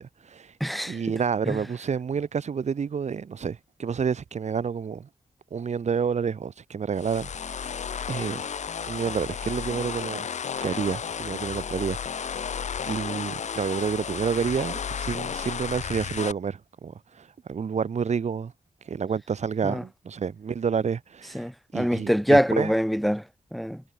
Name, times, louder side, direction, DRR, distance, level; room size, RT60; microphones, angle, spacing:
voice 1, 0.0-0.5 0.8-5.1 5.5-7.8 8.1-8.4 8.9-10.3 10.6-12.4 12.9-18.5 18.9-21.4 21.7-22.7, right 6 dB, 75° right, 6.6 m, -29 dB
voice 2, 0.6-1.0 1.5-1.6 19.6-19.8 21.3-23.2 23.5-23.8, equal, ahead, 3.6 m, -24 dB
sound 1, 7.0-16.3, left 7 dB, 85° left, 2.5 m, -33 dB
wide cardioid pair, 115°, 12 cm